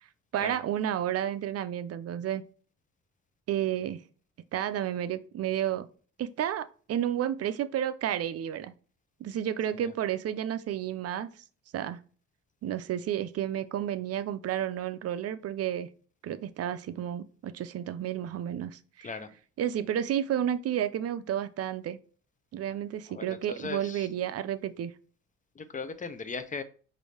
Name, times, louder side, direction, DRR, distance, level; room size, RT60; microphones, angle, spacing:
voice 1, 0.3-2.4 3.5-4.0 4.5-5.9 6.2-8.7 9.2-11.3 11.7-12.0 12.6-15.9 16.2-19.1 19.6-22.0 22.5-24.9, right 10 dB, 55° right, 0.5 m, -31 dB
voice 2, 23.1-24.1 25.6-26.6, left 4 dB, 25° left, 0.6 m, -38 dB
5.0 x 2.7 x 3.1 m
cardioid pair, 90°, 30 cm